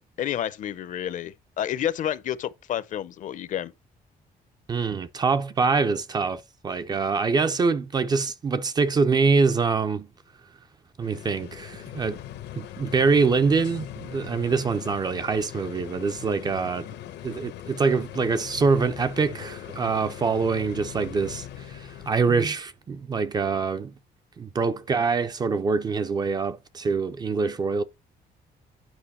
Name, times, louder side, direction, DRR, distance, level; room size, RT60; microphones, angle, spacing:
voice 1, 0.2-3.7, left 10 dB, 50° left, 0.5 m, -30 dB
voice 2, 4.7-10.1 11.0-12.2 12.6-16.9 17.2-23.9 24.4-27.8, right 4 dB, 25° right, 0.4 m, -24 dB
sound 1, 11.0-22.3, left 12 dB, 85° left, 0.9 m, -40 dB
8.9 x 5.0 x 4.2 m
cardioid pair, 175°, 17 cm